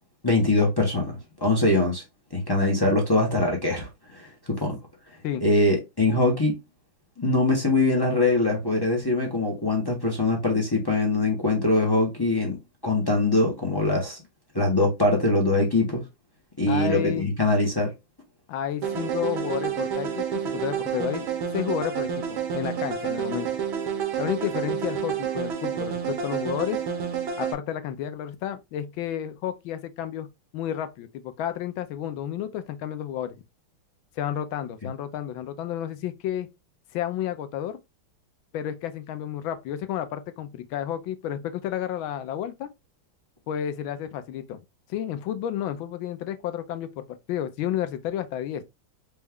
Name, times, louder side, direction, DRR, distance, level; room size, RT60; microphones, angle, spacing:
voice 1, 0.2-2.0 2.3-4.8 5.4-6.6 7.2-14.2 14.5-16.0 16.6-17.9, left 2 dB, 35° left, 0.4 m, -23 dB
voice 2, 16.7-17.3 18.5-23.5 24.2-26.8 27.4-30.3 30.5-33.4 34.2-36.5 36.9-37.8 38.5-42.7 43.5-44.6 44.9-48.6, left 10 dB, 80° left, 1.4 m, -31 dB
sound 1, 18.8-27.5, right 8 dB, 75° right, 1.8 m, -29 dB
5.2 x 2.3 x 3.5 m
omnidirectional pair, 2.2 m